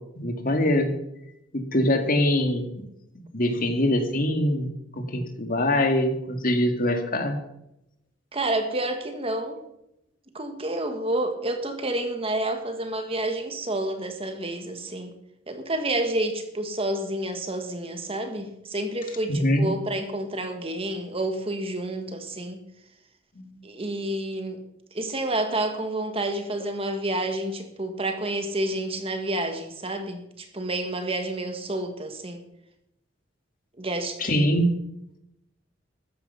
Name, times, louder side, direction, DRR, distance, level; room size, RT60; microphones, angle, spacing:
voice 1, 0.2-0.9 1.5-2.9 3.3-7.4 19.3-19.7 23.4-23.6 34.2-34.7, left 1 dB, 45° left, 6 dB, 1.9 m, -23 dB
voice 2, 8.3-9.6 10.3-15.1 15.5-22.6 23.6-24.6 24.9-32.4 33.8-34.5, right 1 dB, 30° right, 6 dB, 1.6 m, -29 dB
14.0 x 9.6 x 5.7 m, 0.83 s
head